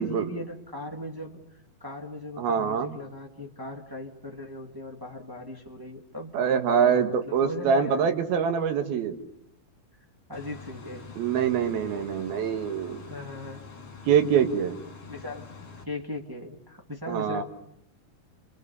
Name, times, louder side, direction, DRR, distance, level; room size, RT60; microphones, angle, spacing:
voice 1, 0.0-8.2 10.3-11.1 13.1-13.9 15.1-15.5 15.8-17.4, left 1 dB, 20° right, 1 dB, 0.6 m, -38 dB
voice 2, 2.4-3.0 6.3-9.2 11.2-13.0 14.1-14.8 17.1-17.4, right 7 dB, 75° right, 7 dB, 3.5 m, -24 dB
sound 1, 10.3-15.8, left 5 dB, 40° left, 4.4 m, -45 dB
29.5 x 23.0 x 6.9 m, 0.74 s
omnidirectional pair, 4.4 m